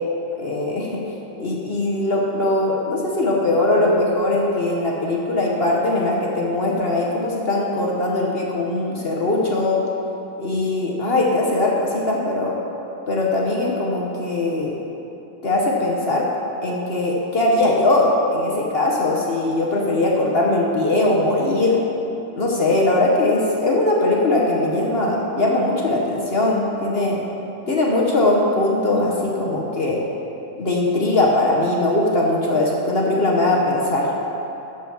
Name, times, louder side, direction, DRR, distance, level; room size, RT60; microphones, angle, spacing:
voice 1, 0.3-1.0 1.4-9.8 10.4-12.6 13.1-14.8 15.4-16.3 16.6-21.8 22.4-27.2 27.7-30.0 30.6-34.1, left 2 dB, 45° left, -2 dB, 0.8 m, -20 dB
11.0 x 4.9 x 7.0 m, 3.0 s
omnidirectional pair, 2.2 m